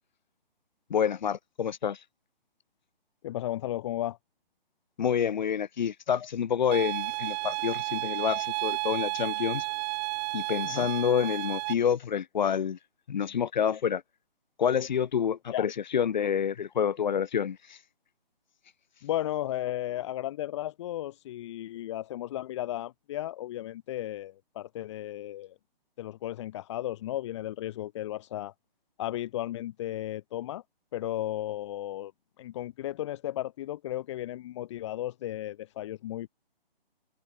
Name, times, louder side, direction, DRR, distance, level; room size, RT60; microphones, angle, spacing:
voice 1, 0.9-2.0 5.0-9.7 10.3-12.8 13.1-14.0 14.6-17.8, left 8 dB, 50° left, 3.9 m, -28 dB
voice 2, 3.2-4.2 10.6-10.9 15.5-15.7 19.0-25.6 26.0-28.5 29.0-30.6 30.9-32.1 32.4-36.3, left 13 dB, 30° left, 2.1 m, -34 dB
sound 1, 6.7-11.7, right 40 dB or more, 10° right, 0.7 m, -32 dB
figure-of-eight pair, 150°, 30 cm